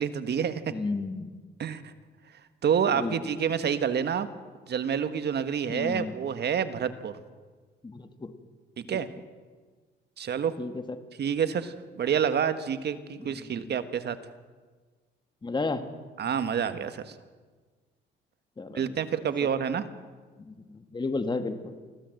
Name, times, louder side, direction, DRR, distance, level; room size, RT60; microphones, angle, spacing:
voice 1, 0.0-0.7 1.6-1.9 2.6-4.3 4.7-7.1 8.8-9.1 10.2-10.6 11.2-14.2 16.2-17.1 18.7-19.9, right 7 dB, 55° right, 11 dB, 1.5 m, -28 dB
voice 2, 0.7-1.4 2.9-3.3 5.7-6.2 7.8-8.3 10.6-10.8 13.2-13.7 15.4-15.9 18.6-19.0 20.4-21.8, left 3 dB, 20° left, 9 dB, 1.8 m, -33 dB
24.5 x 15.5 x 7.8 m, 1.4 s
cardioid pair, 90°, 20 cm